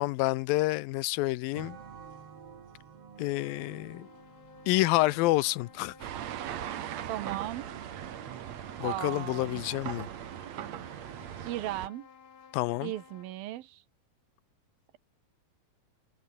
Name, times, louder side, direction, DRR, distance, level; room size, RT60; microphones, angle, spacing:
voice 1, 0.0-1.8 3.2-4.1 4.7-5.9 8.8-10.1 12.5-12.9, left 19 dB, 85° left, 2.5 m, -28 dB
sound 1, 1.5-6.7, right 6 dB, 45° right, 3.2 m, -51 dB
sound 2, 3.2-13.5, left 7 dB, 45° left, 2.6 m, -55 dB
sound 3, 6.0-11.9, right 11 dB, 60° right, 2.2 m, -39 dB
voice 2, 7.0-7.7 8.8-9.6 11.4-12.1 12.8-13.8, right 14 dB, 85° right, 3.0 m, -36 dB
omnidirectional pair, 4.1 m